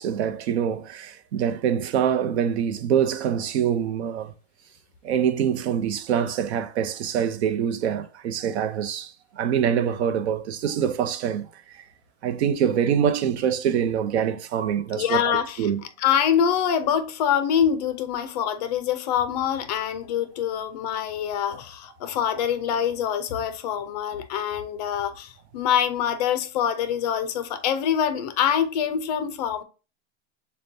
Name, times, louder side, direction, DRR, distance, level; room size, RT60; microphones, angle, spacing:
voice 1, 0.0-4.3 5.0-11.8 12.2-15.2 15.6-15.8, right 8 dB, 90° right, 0.7 m, -25 dB
voice 2, 14.9-15.7 16.0-29.6, left 9 dB, 40° left, 0.5 m, -25 dB
6.7 x 2.3 x 2.6 m
supercardioid pair, 175°, 32 cm